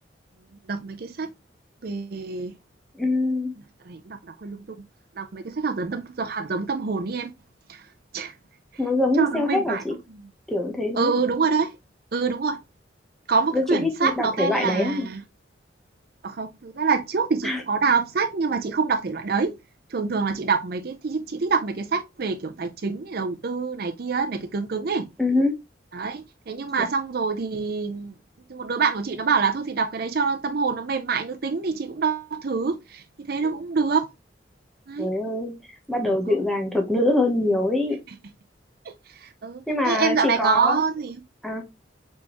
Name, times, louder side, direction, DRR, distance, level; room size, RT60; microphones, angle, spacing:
voice 1, 0.7-1.3 1.8-2.6 3.8-4.9 5.2-7.3 7.7-7.9 8.1-8.3 9.2-9.8 10.1-10.3 11.0-11.8 12.1-12.6 13.3-15.2 16.2-19.6 19.9-25.1 25.9-28.1 28.5-34.1 34.9-35.1 36.3-36.4 38.8-41.2, right 5 dB, 55° right, 0.5 m, -26 dB
voice 2, 3.0-3.5 8.8-9.9 10.5-11.1 13.5-15.1 17.4-17.6 25.2-25.5 35.0-35.5 35.9-38.0 39.7-40.8 41.4-41.6, left 2 dB, ahead, 0.9 m, -24 dB
4.4 x 3.5 x 2.9 m
head